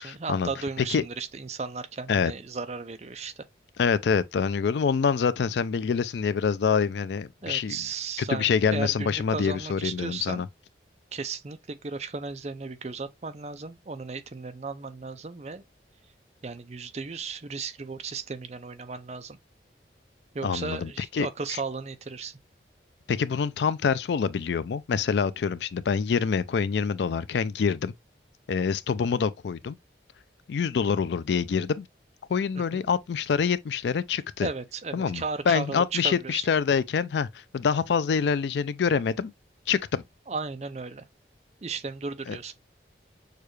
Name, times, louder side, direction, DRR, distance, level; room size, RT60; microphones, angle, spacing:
voice 1, 0.0-3.4 7.4-10.4 11.1-15.6 16.4-19.4 20.3-22.4 32.7-32.9 34.4-36.5 40.3-41.0 41.6-42.5, right 4 dB, 40° right, 0.5 m, -35 dB
voice 2, 3.8-7.8 8.3-10.5 20.4-21.3 23.1-27.9 28.5-29.8 30.5-31.9 32.3-34.5 34.9-39.3 39.7-40.0 42.3-42.4, left 6 dB, 75° left, 0.4 m, -26 dB
6.5 x 2.4 x 3.1 m
head